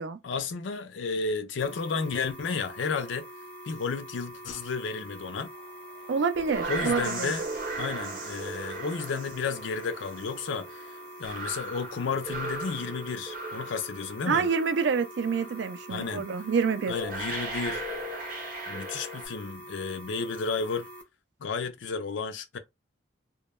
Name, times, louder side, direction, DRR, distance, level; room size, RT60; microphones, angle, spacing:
voice 1, 0.2-3.3 3.7-5.5 6.7-7.5 7.8-14.5 15.9-16.2 16.9-17.9 18.7-20.9 21.4-22.6, left 5 dB, 85° left, 0.5 m, -32 dB
sound 1, 1.6-21.0, right 1 dB, 5° left, 0.4 m, -45 dB
sound 2, 6.1-15.0 15.3-15.7 16.4-16.5 16.9-19.3, right 2 dB, 45° right, 0.7 m, -37 dB
voice 2, 6.1-7.3 14.3-16.9, right 5 dB, 75° right, 0.4 m, -27 dB
2.1 x 2.1 x 3.0 m
head